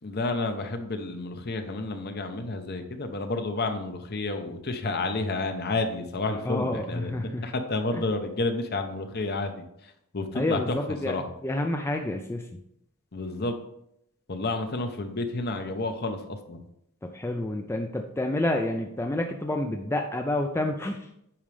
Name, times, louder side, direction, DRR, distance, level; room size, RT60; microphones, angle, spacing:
voice 1, 0.0-7.1 7.4-10.8 11.1-11.2 13.1-13.6 14.3-16.7, left 2 dB, 45° left, 7 dB, 0.8 m, -30 dB
voice 2, 6.3-7.5 7.9-8.0 10.3-12.5 17.0-21.1, left 1 dB, 10° left, 3 dB, 0.4 m, -29 dB
8.8 x 5.1 x 3.3 m, 0.78 s
head